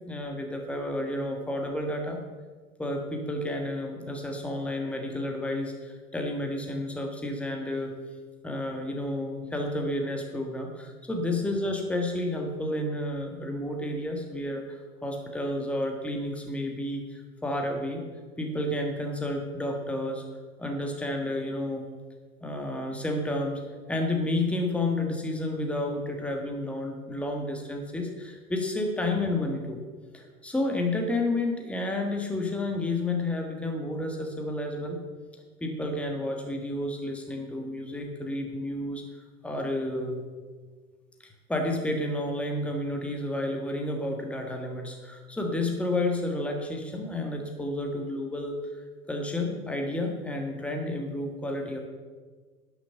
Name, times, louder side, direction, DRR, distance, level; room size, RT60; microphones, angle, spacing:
voice 1, 0.1-2.2 2.8-7.9 8.4-18.0 18.4-20.2 20.6-21.9 22.4-23.6 23.9-29.8 30.1-35.0 35.6-39.0 39.4-40.2 41.2-48.8 49.1-51.8, left 1 dB, 5° left, 2 dB, 1.4 m, -31 dB
11.5 x 6.3 x 6.5 m, 1.5 s
figure-of-eight pair, 95°, 46 cm